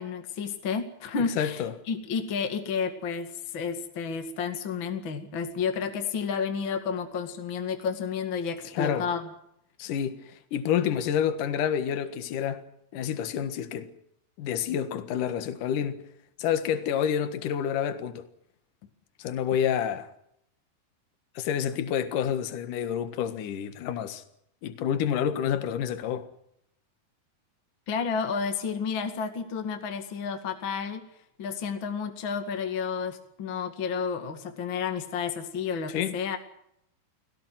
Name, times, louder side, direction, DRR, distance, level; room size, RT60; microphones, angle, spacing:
voice 1, 0.0-9.3 27.9-31.1 31.4-36.4, left 6 dB, 35° left, 2.4 m, -31 dB
voice 2, 1.3-1.7 8.7-9.1 9.8-12.6 12.9-13.9 14.4-16.0 16.4-18.3 19.2-20.1 21.4-24.2 24.6-26.3 35.9-36.1, left 9 dB, 60° left, 2.9 m, -28 dB
21.5 x 17.5 x 9.3 m
omnidirectional pair, 4.4 m